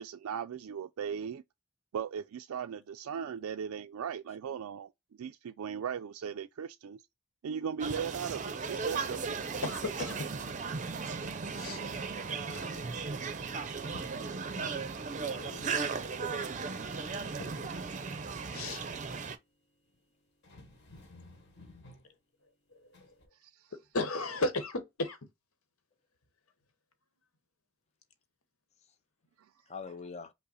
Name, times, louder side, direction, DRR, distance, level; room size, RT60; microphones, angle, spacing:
voice 1, 0.0-1.4 1.9-4.9 5.2-7.0 7.4-9.3 16.6-16.8 23.4-23.7, right 7 dB, 85° right, 0.4 m, -38 dB
sound 1, 7.8-19.4, right 5 dB, 35° right, 0.5 m, -36 dB
voice 2, 9.6-10.3 11.6-11.8 12.5-12.7 18.5-18.8 22.7-22.8 23.7-25.2, left 2 dB, 80° left, 1.0 m, -34 dB
voice 3, 12.3-12.8 15.3-15.9 29.7-30.3, left 4 dB, 30° left, 0.5 m, -46 dB
sound 2, 13.6-15.0 16.5-17.1 17.4-17.9 19.9-20.0 20.4-22.1 22.9-23.3, left 2 dB, 55° left, 1.4 m, -52 dB
5.4 x 2.1 x 3.9 m
head